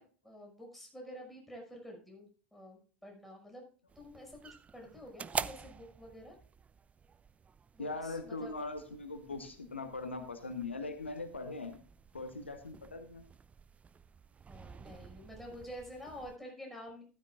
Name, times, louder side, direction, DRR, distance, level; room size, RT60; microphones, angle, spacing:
voice 1, 0.0-3.7 4.0-6.4 7.7-8.5 14.5-17.0, equal, ahead, 0 dB, 5.8 m, -49 dB
sound 1, 3.9-16.4, right 6 dB, 20° right, 0.4 m, -47 dB
voice 2, 7.8-11.8 12.1-13.2, left 3 dB, 90° left, 8 dB, 1.1 m, -40 dB
13.5 x 12.0 x 2.4 m, 0.39 s
figure-of-eight pair, 75°, 6 cm